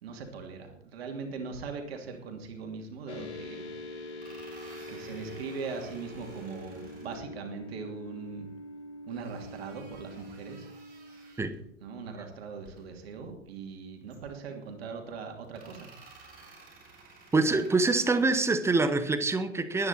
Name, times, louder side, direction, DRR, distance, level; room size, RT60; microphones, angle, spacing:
voice 1, 0.0-3.6 4.9-8.5 9.1-10.7 11.8-15.9, right 5 dB, 55° right, 3 dB, 2.9 m, -40 dB
sound 1, 3.1-11.3, left 1 dB, 65° left, 2.1 m, -44 dB
sound 2, 3.3-3.4 4.1-7.2 9.1-11.6 12.5-12.8 13.2-13.3 14.1-14.7 15.4-18.4, right 3 dB, 25° right, 7.2 m, -53 dB
voice 2, 17.3-19.9, right 3 dB, 5° right, 11 dB, 0.9 m, -25 dB
22.0 x 9.7 x 4.3 m, 0.75 s
figure-of-eight pair, 100°, 36 cm